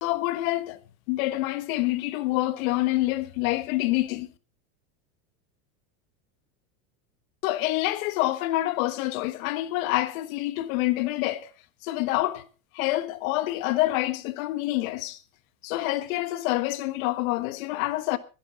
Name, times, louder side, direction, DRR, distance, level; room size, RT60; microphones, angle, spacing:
voice 1, 0.0-0.8 1.1-4.3 7.4-11.5 11.8-12.5 12.7-15.2 15.6-18.2, left 17 dB, 70° left, 1.5 m, -27 dB
23.0 x 10.5 x 3.7 m
supercardioid pair, 135°, 44 cm